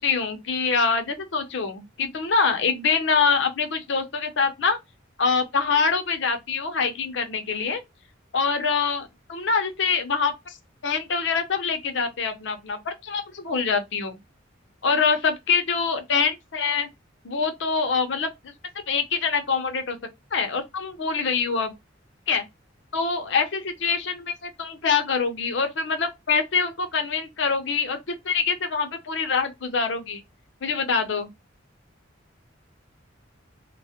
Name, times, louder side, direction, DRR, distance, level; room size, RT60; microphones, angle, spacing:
voice 1, 0.0-4.8 5.2-7.8 8.3-10.6 10.8-14.2 14.8-16.9 17.2-18.3 18.9-20.0 20.3-21.7 22.3-22.4 22.9-30.2 30.6-31.3, left 5 dB, 70° left, 0.6 m, -25 dB
2.2 x 2.0 x 2.7 m
head